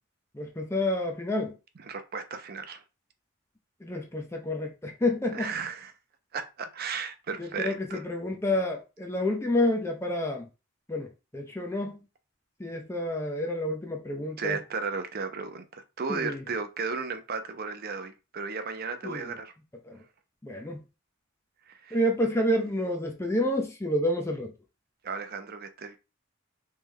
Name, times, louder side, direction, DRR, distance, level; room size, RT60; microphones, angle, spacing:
voice 1, 0.3-1.6 3.8-5.5 7.4-10.5 10.9-12.0 12.6-14.6 16.1-16.4 19.0-19.3 19.9-20.0 20.4-20.8 21.9-24.5, left 1 dB, 10° left, 0.5 m, -29 dB
voice 2, 1.8-2.8 5.3-5.9 6.3-8.0 14.4-19.5 21.7-22.0 25.0-26.0, right 5 dB, 45° right, 0.5 m, -35 dB
3.3 x 3.2 x 3.5 m
head